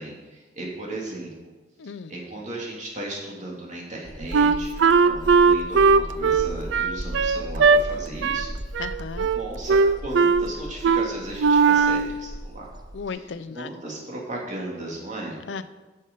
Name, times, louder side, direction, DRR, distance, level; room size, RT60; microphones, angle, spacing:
voice 1, 0.0-1.5 2.1-8.5 9.3-12.7 13.5-15.4, right 1 dB, 40° right, -3 dB, 2.4 m, -36 dB
voice 2, 1.8-2.1 8.8-9.3 12.9-13.7 15.5-15.6, left 5 dB, 75° left, 13 dB, 0.5 m, -35 dB
sound 1, 4.0-13.1, equal, 25° right, 0.7 m, -37 dB
Wind instrument woodwind instrument, 4.3-7.8 8.2-8.5 8.7-9.4 9.7-10.5 10.8-11.1 11.4-12.1, right 5 dB, 80° right, 0.4 m, -18 dB
9.6 x 6.5 x 5.2 m, 1.2 s
head